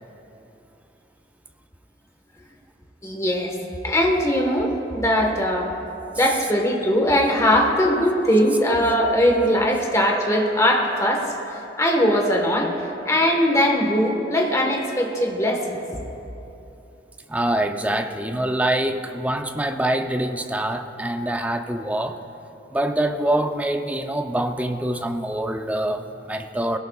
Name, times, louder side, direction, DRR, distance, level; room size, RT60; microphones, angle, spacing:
voice 1, 3.0-3.6 3.8-5.7 6.1-12.7 13.0-15.8, equal, 15° left, 1 dB, 1.4 m, -20 dB
voice 2, 17.3-22.2 22.7-26.8, right 1 dB, 10° right, 6 dB, 0.6 m, -25 dB
20.5 x 17.5 x 2.4 m, 3.0 s
head